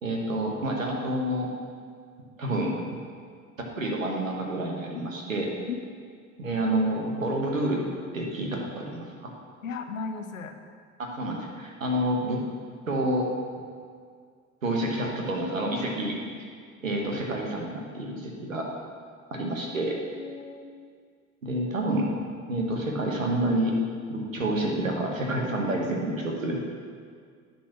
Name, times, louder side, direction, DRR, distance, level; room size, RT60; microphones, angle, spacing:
voice 1, 0.0-1.5 2.4-2.8 3.6-5.5 6.4-7.8 8.1-9.3 11.1-12.4 12.9-13.3 14.6-16.2 16.8-18.7 19.3-19.9 21.4-22.1 22.5-23.7 24.1-26.6, right 1 dB, 90° right, 0 dB, 1.2 m, -28 dB
voice 2, 9.6-10.6 19.4-19.6 19.9-20.7, left 5 dB, 85° left, 6 dB, 0.7 m, -36 dB
10.5 x 4.1 x 5.9 m, 2.1 s
figure-of-eight pair, 65°, 38 cm